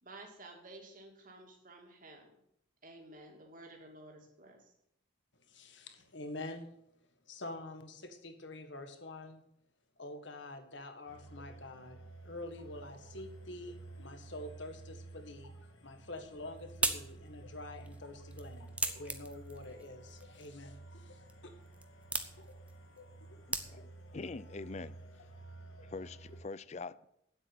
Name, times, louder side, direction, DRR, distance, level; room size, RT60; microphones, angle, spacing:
voice 1, 0.0-2.3 2.8-4.7, right 2 dB, 40° right, 1 dB, 2.6 m, -53 dB
voice 2, 5.4-6.7 7.2-9.4 10.0-15.5 15.8-21.5, left 2 dB, 65° left, 7 dB, 1.7 m, -47 dB
sound 1, 11.1-26.4, right 2 dB, 85° left, 1.8 m, -52 dB
sound 2, 16.1-24.1, right 2 dB, 5° right, 0.8 m, -41 dB
voice 3, 23.5-25.3 25.8-27.1, left 3 dB, 35° left, 18 dB, 0.4 m, -45 dB
9.3 x 8.1 x 9.3 m, 0.77 s
head